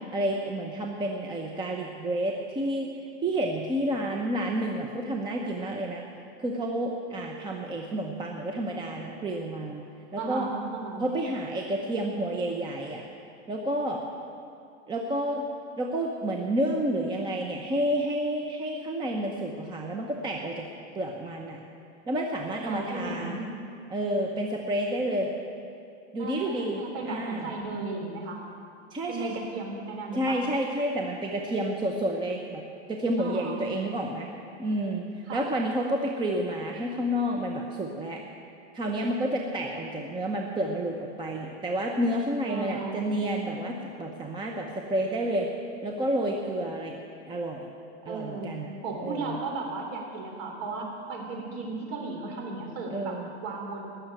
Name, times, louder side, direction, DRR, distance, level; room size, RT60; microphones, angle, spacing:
voice 1, 0.1-2.9 3.2-6.0 6.4-9.8 10.1-10.5 11.0-13.0 13.5-14.0 14.9-15.4 15.8-20.6 20.9-21.6 22.1-23.4 23.9-25.3 26.1-27.5 28.9-29.3 30.1-32.6 32.9-34.3 34.6-35.0 35.3-38.2 38.7-45.5 45.8-46.9 47.3-47.7 48.1-48.7 49.0-49.4 52.9-53.3, right 1 dB, 10° right, 0 dB, 0.8 m, -30 dB
voice 2, 10.2-11.0 22.7-23.5 26.2-28.4 29.1-30.4 33.2-33.6 35.3-35.5 42.5-43.0 48.0-48.5 48.8-53.9, right 3 dB, 45° right, 1 dB, 3.6 m, -35 dB
18.5 x 7.1 x 9.0 m, 2.5 s
supercardioid pair, 145°, 36 cm